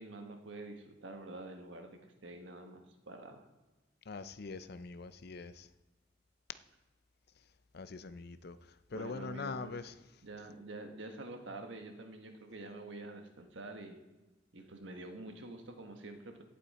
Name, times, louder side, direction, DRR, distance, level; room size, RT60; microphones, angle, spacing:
voice 1, 0.0-3.4 8.9-9.7 10.2-14.0 14.5-16.4, right 2 dB, 80° right, 5 dB, 1.3 m, -47 dB
voice 2, 4.1-5.7 7.7-8.6 8.9-9.9, left 4 dB, 55° left, 13 dB, 0.5 m, -43 dB
16.0 x 8.5 x 4.2 m, 1.1 s
head